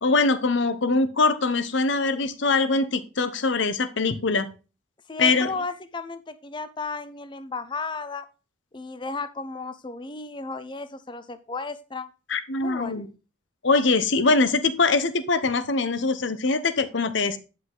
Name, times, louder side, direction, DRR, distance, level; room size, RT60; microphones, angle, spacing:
voice 1, 0.0-4.5 5.2-5.5 12.3-13.1 13.6-17.4, left 3 dB, 65° left, 13 dB, 0.8 m, -23 dB
voice 2, 5.1-8.3 8.7-12.1 12.6-13.1, left 3 dB, 25° left, 12 dB, 0.5 m, -34 dB
9.6 x 5.6 x 3.8 m, 0.32 s
head